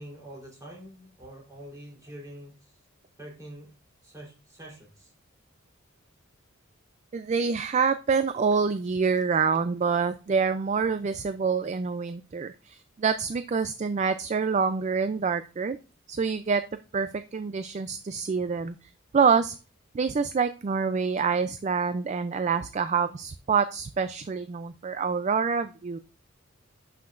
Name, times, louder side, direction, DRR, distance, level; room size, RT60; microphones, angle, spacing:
voice 1, 0.0-2.7 3.2-3.7 4.0-5.1, right 1 dB, 15° right, -3 dB, 3.5 m, -45 dB
voice 2, 7.1-15.8 16.1-16.6 16.9-18.7 19.1-19.6 19.9-26.0, right 5 dB, 35° right, 11 dB, 0.3 m, -26 dB
11.5 x 5.8 x 2.5 m, 0.33 s
head